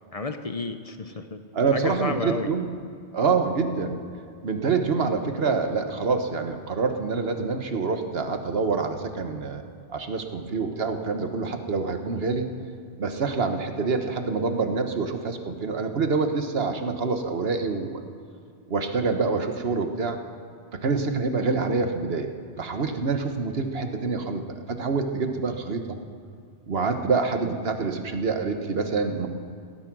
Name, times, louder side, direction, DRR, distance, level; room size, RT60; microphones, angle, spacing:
voice 1, 0.1-1.4 1.7-2.5 20.9-21.1 21.4-21.5, left 3 dB, 35° left, 7 dB, 0.8 m, -32 dB
voice 2, 1.5-2.7 3.1-4.0 4.4-9.6 9.9-12.5 13.0-18.0 18.7-20.2 20.7-22.3 22.6-24.4 24.7-26.0 26.7-29.3, right 4 dB, 60° right, 6 dB, 1.4 m, -26 dB
17.5 x 13.0 x 6.1 m, 2.4 s
omnidirectional pair, 1.2 m